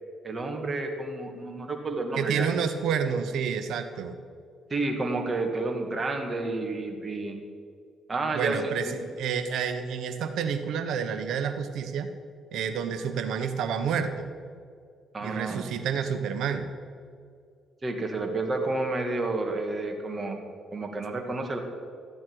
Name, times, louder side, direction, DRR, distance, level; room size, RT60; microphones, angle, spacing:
voice 1, 0.2-2.5 4.7-7.4 8.1-8.9 15.1-15.7 17.8-20.4 20.7-21.6, right 2 dB, 30° right, 3 dB, 1.9 m, -30 dB
voice 2, 2.2-4.1 8.3-12.1 12.5-14.3 15.2-16.7, right 7 dB, 75° right, 8 dB, 1.0 m, -29 dB
14.5 x 9.5 x 4.7 m, 2.2 s
cardioid pair, 90°, 0 cm